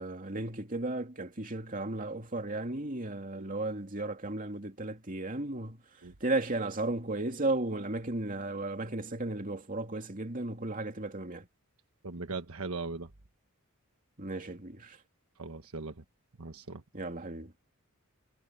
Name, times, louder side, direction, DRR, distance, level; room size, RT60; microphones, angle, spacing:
voice 1, 0.0-11.5 14.2-15.0 16.9-17.6, right 2 dB, 40° right, 2.8 m, -35 dB
voice 2, 12.0-13.1 15.4-16.0 16.4-16.8, right 3 dB, 75° right, 1.3 m, -39 dB
head